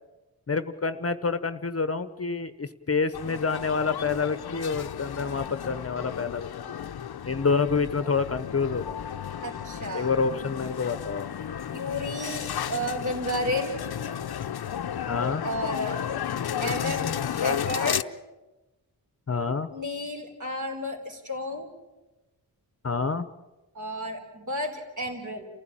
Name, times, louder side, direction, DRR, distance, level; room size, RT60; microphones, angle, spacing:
voice 1, 0.5-6.7 7.2-9.1 9.9-11.3 15.1-15.4 19.3-19.7 22.8-23.3, left 4 dB, 40° left, 12 dB, 0.9 m, -28 dB
sound 1, 3.1-18.0, left 9 dB, 75° left, 0.7 m, -33 dB
voice 2, 9.4-10.2 11.7-13.8 15.4-16.0 16.6-18.0 19.7-21.7 23.7-25.5, left 1 dB, 50° right, 2 dB, 4.3 m, -32 dB
29.0 x 15.5 x 8.8 m, 1.1 s
wide cardioid pair, 125°, 38 cm